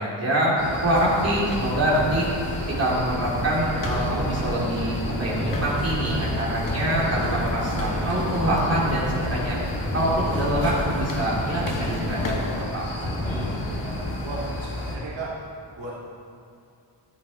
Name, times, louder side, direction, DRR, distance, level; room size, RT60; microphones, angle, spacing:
voice 1, 0.0-2.3 2.8-9.6 9.9-13.1, right 1 dB, 30° right, -6 dB, 2.9 m, -25 dB
sound 1, 0.6-15.0, left 1 dB, 85° left, 2.4 m, -34 dB
sound 2, 0.6-14.6, equal, 15° left, 2.2 m, -31 dB
sound 3, 1.1-12.6, left 3 dB, 40° left, 0.9 m, -38 dB
voice 2, 13.4-15.3 15.8-15.9, right 3 dB, 65° right, -6 dB, 2.0 m, -36 dB
13.5 x 9.5 x 4.2 m, 2.5 s
wide cardioid pair, 150°, 48 cm